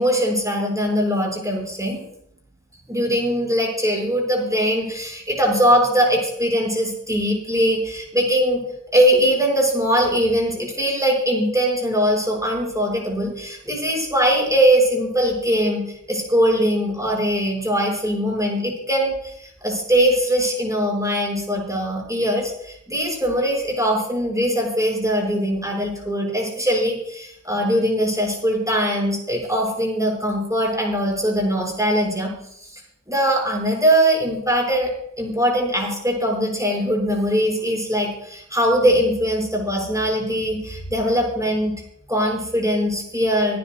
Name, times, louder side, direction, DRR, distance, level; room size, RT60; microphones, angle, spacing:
voice 1, 0.0-2.0 2.9-8.6 8.9-32.8 33.1-34.9 35.2-41.7 42.1-43.6, equal, 10° right, -1 dB, 6.3 m, -21 dB
25.5 x 10.5 x 2.5 m, 0.71 s
wide cardioid pair, 60°, 32 cm